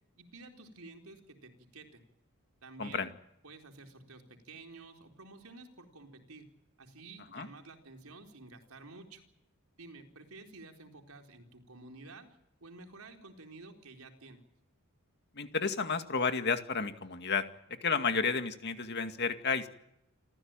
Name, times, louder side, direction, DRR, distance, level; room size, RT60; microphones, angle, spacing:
voice 1, 0.2-2.0 2.6-3.1 3.4-6.5 6.8-9.2 9.8-12.3 12.6-14.4, right 3 dB, 80° right, 4 dB, 4.2 m, -51 dB
voice 2, 15.4-17.4 17.8-19.7, left 5 dB, 50° left, 7 dB, 2.2 m, -31 dB
28.5 x 15.0 x 9.1 m, 0.84 s
head